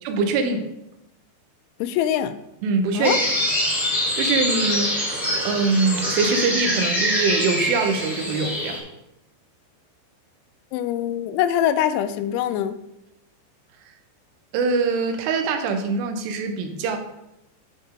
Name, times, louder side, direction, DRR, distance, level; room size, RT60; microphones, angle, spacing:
voice 1, 0.0-0.7 2.6-3.2 4.2-5.1 5.4-8.8 14.5-17.0, right 4 dB, 85° right, 7 dB, 3.4 m, -23 dB
voice 2, 1.8-2.4 2.9-3.2 10.7-12.8, left 10 dB, 85° left, 11 dB, 3.0 m, -23 dB
sound 1, 3.0-8.8, equal, ahead, 1.1 m, -24 dB
11.5 x 5.4 x 3.7 m, 0.87 s
omnidirectional pair, 5.4 m